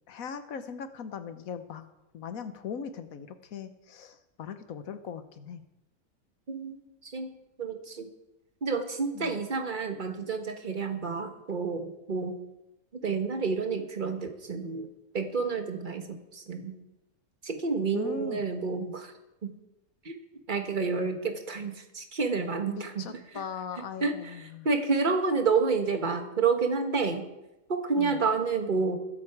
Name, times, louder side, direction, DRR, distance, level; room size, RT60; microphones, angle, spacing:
voice 1, 0.1-1.9 2.1-5.6 9.1-9.4 17.9-18.4 22.7-24.7 28.0-28.2, left 6 dB, 70° left, 10 dB, 1.4 m, -39 dB
voice 2, 7.0-7.3 7.6-8.1 8.6-12.3 13.0-14.9 15.1-16.7 17.4-19.1 19.4-19.5 20.0-20.2 20.5-23.0 24.0-24.3 24.6-27.2 27.7-29.0, right 4 dB, 35° right, 6 dB, 1.4 m, -29 dB
21.5 x 7.9 x 4.8 m, 0.95 s
omnidirectional pair, 1.5 m